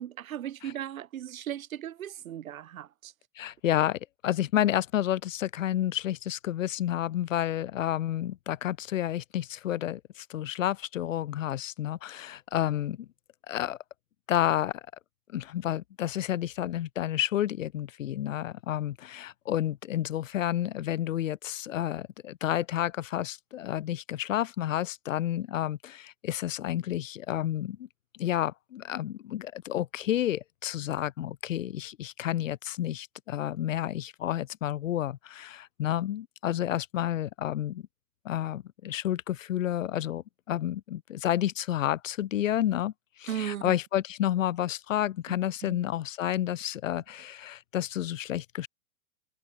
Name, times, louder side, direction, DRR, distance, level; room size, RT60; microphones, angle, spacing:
voice 1, 0.0-3.1 43.3-43.8 45.3-45.4, right 11 dB, 65° right, 4.4 m, -37 dB
voice 2, 3.4-13.1 13.5-13.8 14.3-14.8 15.3-27.9 28.2-37.8 38.2-42.9 43.2-48.7, left 12 dB, 60° left, 2.7 m, -30 dB
hypercardioid pair, 170°, 44 cm